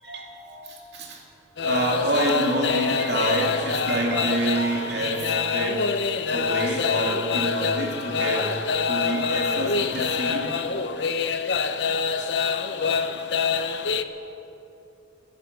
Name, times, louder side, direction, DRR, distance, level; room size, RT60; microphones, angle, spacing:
voice 1, 0.0-1.2 1.6-5.9 6.3-10.8, right 1 dB, 60° right, 0 dB, 2.5 m, -27 dB
sound 1, 1.6-14.0, left 5 dB, 60° left, 0.6 m, -26 dB
18.5 x 10.0 x 6.7 m, 2.8 s
head